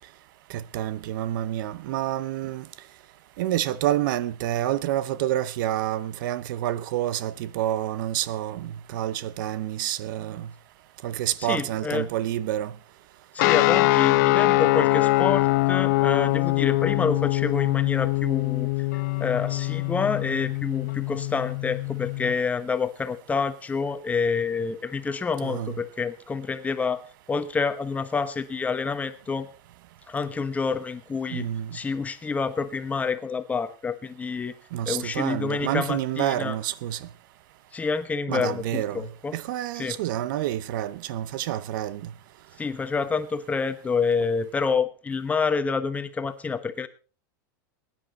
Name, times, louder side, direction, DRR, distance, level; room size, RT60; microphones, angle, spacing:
voice 1, 0.5-2.6 3.4-10.5 11.0-12.7 25.4-25.8 31.3-31.8 34.7-37.1 38.3-39.0 39.3-42.0, right 13 dB, 65° right, 0.8 m, -28 dB
voice 2, 11.4-12.0 13.3-18.7 19.2-27.0 27.3-29.5 30.1-31.5 31.7-34.5 34.9-36.5 37.7-39.3 39.8-39.9 42.6-46.9, left 5 dB, 15° left, 1.1 m, -28 dB
sound 1, 13.4-22.3, left 21 dB, 60° left, 0.6 m, -23 dB
21.5 x 10.0 x 4.2 m
supercardioid pair, 150°, 11 cm